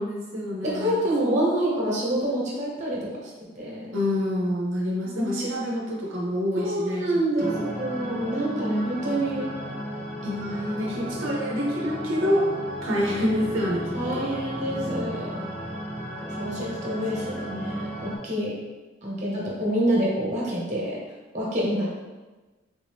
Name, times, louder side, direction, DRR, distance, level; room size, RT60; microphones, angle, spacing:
voice 1, 0.0-1.4 3.9-7.7 10.2-12.5 12.8-14.3 17.4-17.5 21.6-21.8, left 1 dB, 90° right, -3 dB, 0.7 m, -27 dB
voice 2, 0.6-3.9 5.0-5.5 6.6-9.5 13.9-15.3 16.3-18.6 19.0-21.0 21.3-21.9, right 1 dB, 40° right, -5 dB, 1.1 m, -27 dB
sound 1, 7.4-18.2, equal, 10° left, 0.9 m, -34 dB
3.6 x 2.7 x 3.4 m, 1.2 s
head